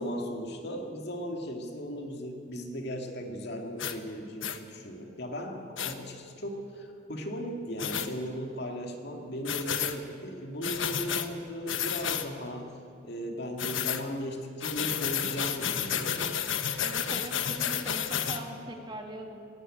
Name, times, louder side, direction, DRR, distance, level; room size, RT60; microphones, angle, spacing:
voice 1, 0.0-12.7 13.0-16.5, equal, 60° left, 2 dB, 2.2 m, -37 dB
sound 1, 3.8-4.0 4.4-4.6 5.8-5.9 7.8-8.1 9.4-10.0 10.6-11.3 11.7-12.3 13.6-14.0 14.6-18.4, left 8 dB, 90° left, 1.2 m, -31 dB
voice 2, 16.8-19.4, right 1 dB, 25° right, 2 dB, 2.1 m, -41 dB
18.0 x 17.5 x 8.9 m, 2.5 s
head